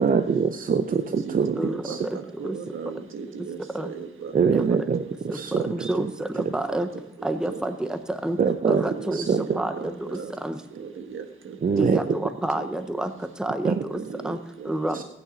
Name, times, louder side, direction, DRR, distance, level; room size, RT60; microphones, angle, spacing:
voice 1, 0.0-2.0 4.3-6.1 8.4-8.8 9.1-9.6 11.6-12.2 13.6-13.8 14.9-15.0, right 6 dB, 45° right, 8 dB, 0.5 m, -24 dB
voice 2, 0.9-4.7 5.1-5.2 5.6-6.0 6.7-6.8 7.2-7.6 8.7-10.3 10.7-12.2 12.5-12.7 13.9-15.0, right 6 dB, 80° right, 6 dB, 1.3 m, -38 dB
voice 3, 5.7-6.1 6.3-6.9 7.2-8.4 8.7-9.2 9.6-9.7 10.4-10.6 11.8-13.1 13.4-13.7 14.2-14.4 14.7-15.0, right 1 dB, 5° right, 9 dB, 0.6 m, -28 dB
16.0 x 9.1 x 5.0 m, 0.86 s
wide cardioid pair, 175°, 21 cm